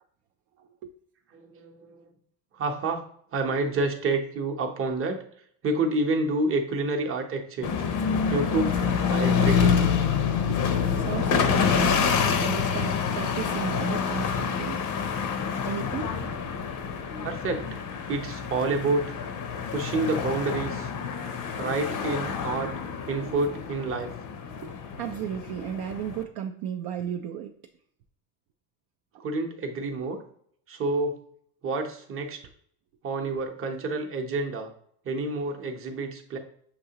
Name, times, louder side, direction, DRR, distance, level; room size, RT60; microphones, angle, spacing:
voice 1, 0.6-0.9 10.5-14.8 15.6-16.1 24.6-27.5 29.1-29.2, right 9 dB, 55° right, 4 dB, 0.5 m, -35 dB
voice 2, 1.3-2.1 2.5-3.0 3.3-5.2 5.6-7.8 8.3-8.8 9.1-9.9 17.2-17.8 18.1-19.1 19.7-20.9 21.6-22.7 23.1-24.1 29.2-30.2 30.7-31.2 31.6-32.4 33.0-34.7 35.0-36.4, right 3 dB, 30° right, 3 dB, 0.8 m, -28 dB
sound 1, 7.6-26.2, left 6 dB, 45° left, 0.6 m, -27 dB
6.7 x 2.8 x 2.8 m, 0.65 s
cardioid pair, 120°, 44 cm